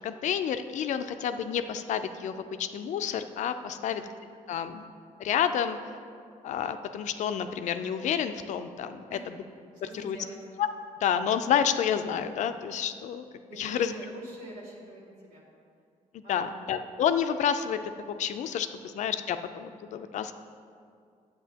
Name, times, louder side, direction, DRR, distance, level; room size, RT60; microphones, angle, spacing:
voice 1, 0.0-4.0 4.5-4.9 5.2-5.8 6.4-9.0 10.0-10.2 10.6-10.7 11.0-13.2 13.6-13.9 16.1-20.4, left 8 dB, 60° left, 9 dB, 0.4 m, -29 dB
voice 2, 3.7-4.0 9.1-9.3 9.8-10.4 13.5-15.5 16.2-16.6 18.6-18.8, right 1 dB, 80° right, -6 dB, 2.1 m, -45 dB
10.0 x 7.9 x 2.8 m, 2.3 s
cardioid pair, 145°, 14 cm